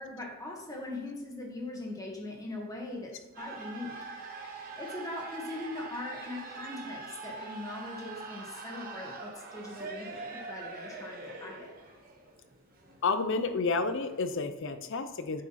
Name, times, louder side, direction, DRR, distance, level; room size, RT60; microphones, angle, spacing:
voice 1, 0.0-4.0 4.8-11.7, left 2 dB, 15° left, -1 dB, 1.6 m, -41 dB
sound 1, 3.3-14.3, right 3 dB, 45° right, 1.3 m, -44 dB
voice 2, 13.0-15.4, left 4 dB, 60° left, 10 dB, 0.7 m, -30 dB
9.1 x 5.0 x 4.1 m, 1.2 s
head